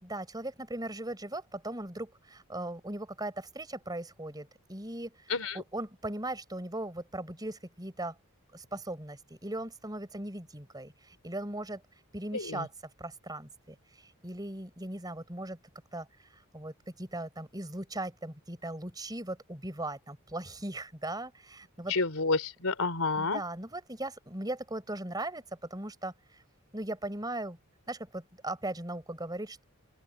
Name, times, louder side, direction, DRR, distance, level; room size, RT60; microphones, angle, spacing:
voice 1, 0.0-5.1 5.5-8.1 8.5-11.8 12.1-12.7 13.0-15.6 15.9-16.1 16.5-21.9 23.2-25.4 25.7-26.1 26.7-27.6 27.9-29.6, right 1 dB, 15° right, 4.9 m, -38 dB
voice 2, 12.3-12.6 21.9-23.4, left 3 dB, 70° left, 3.5 m, -29 dB
open air
head